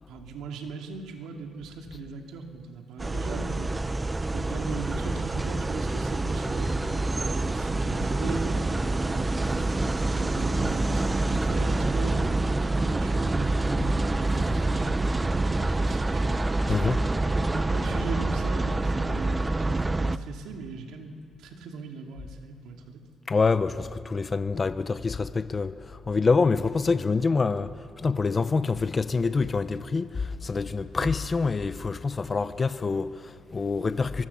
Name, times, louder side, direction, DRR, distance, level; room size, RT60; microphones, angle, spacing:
voice 1, 0.1-3.8 4.3-16.8 17.4-21.1 21.4-23.0 31.0-31.1, right 4 dB, 85° right, 2.7 m, -39 dB
sound 1, 3.0-20.2, right 2 dB, 20° right, 0.7 m, -26 dB
voice 2, 16.7-17.0 23.3-34.3, left 4 dB, 30° left, 0.8 m, -26 dB
24.5 x 21.0 x 7.2 m
cardioid pair, 90°, 0 cm